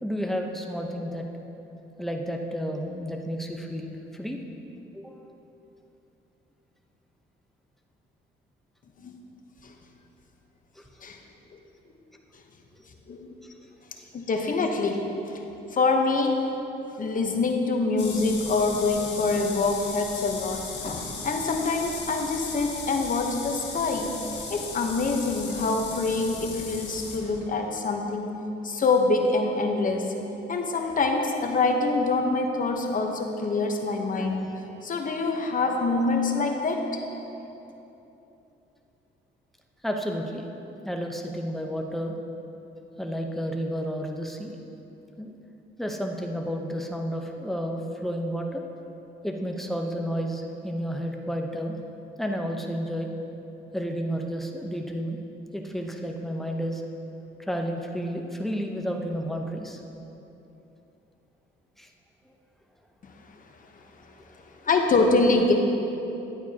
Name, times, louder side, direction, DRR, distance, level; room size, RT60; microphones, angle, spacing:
voice 1, 0.0-1.3 2.0-4.4 4.9-5.1 10.8-10.9 12.8-12.9 39.8-40.4 40.8-42.2 43.0-44.6 45.2-45.3 45.8-48.6 49.2-51.8 52.2-53.1 53.7-55.2 55.5-56.8 57.5-59.8 61.8-61.9 64.2-64.3, equal, ahead, 2 dB, 0.8 m, -31 dB
voice 2, 14.1-15.4 15.7-16.4 17.0-24.1 24.5-28.4 28.6-30.2 30.5-37.0 63.0-63.1 64.6-65.5, left 3 dB, 45° left, 3 dB, 1.0 m, -25 dB
sound 1, 18.0-27.4, left 4 dB, 60° left, 1.4 m, -37 dB
11.0 x 9.0 x 2.9 m, 3.0 s
cardioid pair, 90°, 20 cm